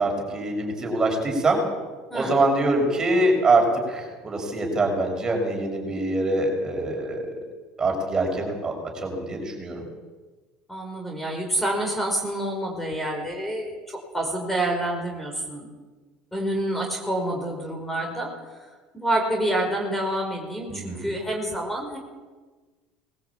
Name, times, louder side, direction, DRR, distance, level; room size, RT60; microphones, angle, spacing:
voice 1, 0.0-1.6 2.1-7.3 7.8-8.7 9.0-9.8 20.7-21.1, right 2 dB, 25° right, 1 dB, 6.5 m, -24 dB
voice 2, 2.1-2.4 10.7-15.7 16.3-18.3 18.6-18.7 18.9-22.0, right 1 dB, 5° left, 2 dB, 5.4 m, -28 dB
20.0 x 15.5 x 8.7 m, 1.3 s
supercardioid pair, 95°, 3 cm